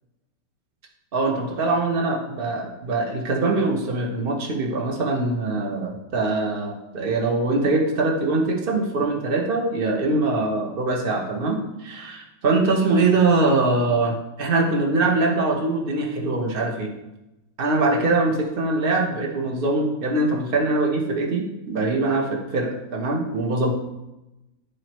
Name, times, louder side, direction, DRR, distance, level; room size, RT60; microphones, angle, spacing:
voice 1, 1.1-16.9 17.6-23.7, right 3 dB, 35° right, 0 dB, 1.2 m, -23 dB
11.5 x 4.8 x 3.1 m, 0.97 s
omnidirectional pair, 2.0 m